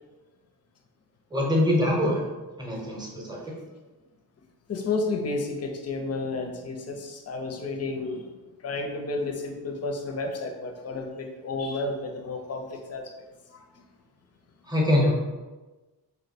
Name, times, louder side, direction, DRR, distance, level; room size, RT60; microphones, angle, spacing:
voice 1, 1.3-2.2 2.6-3.4 14.7-15.1, left 1 dB, 10° right, -3 dB, 0.7 m, -23 dB
voice 2, 4.7-8.3 8.6-13.1 13.5-13.6, left 3 dB, 40° left, 4 dB, 0.5 m, -31 dB
2.9 x 2.1 x 4.1 m, 1.2 s
cardioid pair, 105°, 42 cm